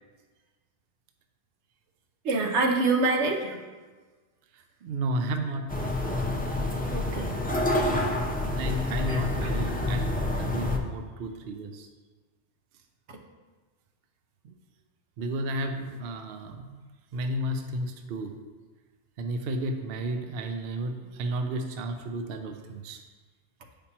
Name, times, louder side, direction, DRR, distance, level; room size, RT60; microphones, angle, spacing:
voice 1, 2.2-3.6 6.9-7.3 9.1-9.6 13.1-13.2, right 3 dB, 80° right, 2 dB, 1.1 m, -26 dB
voice 2, 4.5-5.9 8.5-11.9 14.4-14.5 15.2-16.8 17.1-18.3 19.2-23.0, right 1 dB, 65° right, 5 dB, 0.7 m, -33 dB
sound 1, 5.7-10.8, left 1 dB, 15° left, 0.4 m, -28 dB
8.5 x 5.2 x 2.8 m, 1.3 s
omnidirectional pair, 1.2 m